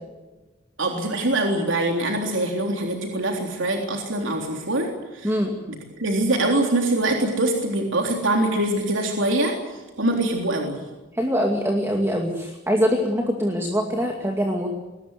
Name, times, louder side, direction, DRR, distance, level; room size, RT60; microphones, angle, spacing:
voice 1, 0.8-5.4 5.7-10.8, right 1 dB, 70° right, 2 dB, 3.7 m, -24 dB
voice 2, 5.2-5.5 11.1-14.7, equal, 15° right, 2 dB, 2.4 m, -23 dB
22.5 x 19.5 x 8.2 m, 1.1 s
head